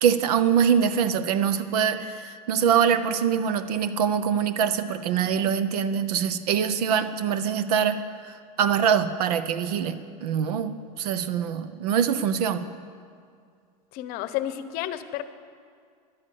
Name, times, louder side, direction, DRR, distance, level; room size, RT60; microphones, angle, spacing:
voice 1, 0.0-12.7, right 8 dB, 85° right, 12 dB, 0.9 m, -24 dB
voice 2, 13.9-15.2, left 12 dB, 50° left, 12 dB, 0.8 m, -31 dB
11.5 x 10.0 x 8.5 m, 2.2 s
supercardioid pair, 135°, 19 cm